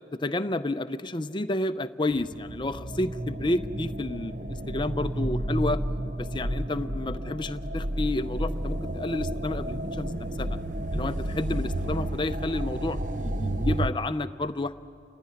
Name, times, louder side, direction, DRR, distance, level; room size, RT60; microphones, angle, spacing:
voice 1, 0.2-5.8 6.2-10.6 10.9-14.8, left 2 dB, 25° left, 10 dB, 0.6 m, -30 dB
sound 1, 2.1-13.9, right 1 dB, 45° right, 0.8 m, -31 dB
29.5 x 16.5 x 10.0 m, 2.6 s
head